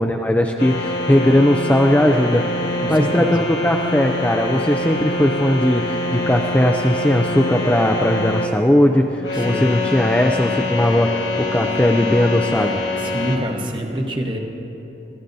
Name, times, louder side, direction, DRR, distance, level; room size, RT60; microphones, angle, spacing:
voice 1, 0.0-2.5 2.9-12.8, left 1 dB, 10° left, 3 dB, 0.3 m, -18 dB
sound 1, 0.6-8.5 9.2-13.4, left 2 dB, 85° left, 1.5 m, -25 dB
voice 2, 2.8-3.4 9.3-9.7 12.9-14.4, right 1 dB, 25° right, 2 dB, 1.0 m, -26 dB
22.5 x 14.5 x 2.7 m, 2.9 s
head